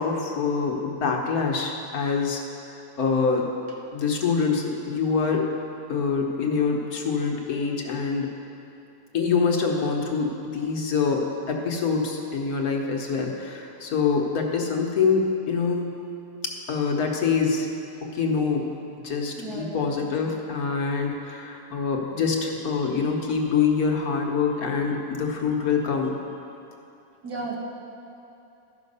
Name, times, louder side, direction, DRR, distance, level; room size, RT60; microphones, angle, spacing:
voice 1, 0.0-2.4 3.0-3.4 3.9-5.4 5.9-8.3 9.1-15.9 16.7-17.7 18.1-18.7 19.0-26.1, left 5 dB, 70° left, 1 dB, 1.4 m, -25 dB
voice 2, 19.4-20.0 20.3-20.4 27.2-27.6, right 3 dB, 85° right, -3 dB, 2.1 m, -35 dB
13.5 x 5.8 x 5.4 m, 2.7 s
omnidirectional pair, 1.6 m